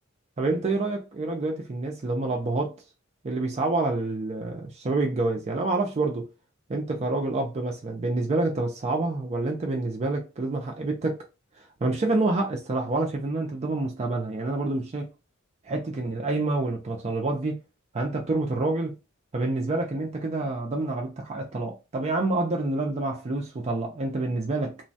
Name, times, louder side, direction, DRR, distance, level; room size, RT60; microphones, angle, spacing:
voice 1, 0.4-2.8 3.2-6.3 6.7-11.2 11.6-15.1 15.6-17.6 17.9-18.9 19.3-24.8, right 2 dB, 30° right, 0.4 m, -27 dB
3.0 x 2.2 x 2.6 m
head